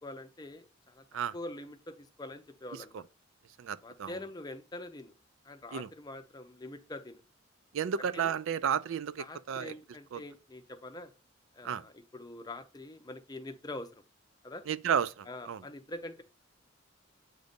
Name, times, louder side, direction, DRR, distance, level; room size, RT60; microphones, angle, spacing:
voice 1, 0.0-1.1 1.3-3.1 3.8-5.1 5.4-7.2 8.1-8.3 9.2-11.1 11.5-14.0 14.4-14.6 15.3-16.2, left 2 dB, 20° left, 0.5 m, -44 dB
voice 2, 3.6-4.2 5.7-5.9 7.7-9.7 10.1-10.2 11.6-11.8 14.7-15.6, right 8 dB, 75° right, 0.4 m, -32 dB
7.9 x 2.6 x 5.1 m
head